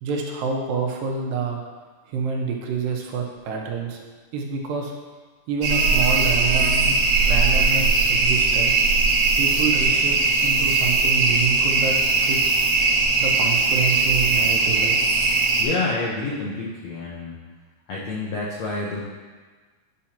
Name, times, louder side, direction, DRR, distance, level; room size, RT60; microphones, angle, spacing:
voice 1, 0.0-1.6 2.1-4.0 4.3-4.9 5.5-7.0 7.3-8.7 9.4-12.6 13.2-15.0, right 5 dB, 85° right, 0 dB, 2.5 m, -27 dB
sound 1, 5.6-15.6, right 3 dB, 65° right, 1.6 m, -20 dB
sound 2, 5.7-7.1, right 2 dB, 40° right, 1.1 m, -37 dB
voice 2, 15.6-17.4 17.9-19.0, left 3 dB, 80° left, -5 dB, 1.5 m, -28 dB
9.9 x 5.8 x 2.9 m, 1.4 s
omnidirectional pair, 4.0 m